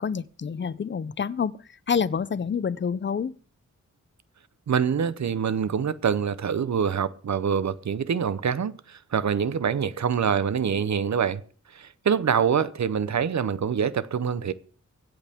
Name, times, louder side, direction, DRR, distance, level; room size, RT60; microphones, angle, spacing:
voice 1, 0.0-1.5 1.9-3.3, left 6 dB, 40° left, 0.5 m, -27 dB
voice 2, 4.7-11.4 11.7-14.5, right 7 dB, 65° right, 0.8 m, -25 dB
24.0 x 8.1 x 3.6 m
wide cardioid pair, 125°, 31 cm